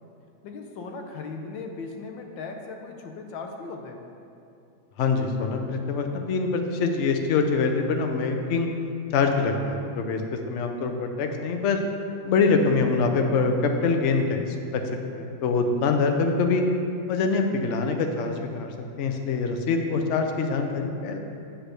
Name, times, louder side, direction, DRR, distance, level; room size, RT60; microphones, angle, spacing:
voice 1, 0.4-4.1 8.7-8.8, left 4 dB, 90° left, 3 dB, 1.5 m, -38 dB
voice 2, 5.0-8.7 9.1-10.2 10.5-11.8 12.2-14.4 14.7-14.8 15.1-16.6 17.1-18.7 19.0-21.2, left 4 dB, 65° left, 4 dB, 0.7 m, -24 dB
8.0 x 4.1 x 6.6 m, 2.5 s
omnidirectional pair, 2.0 m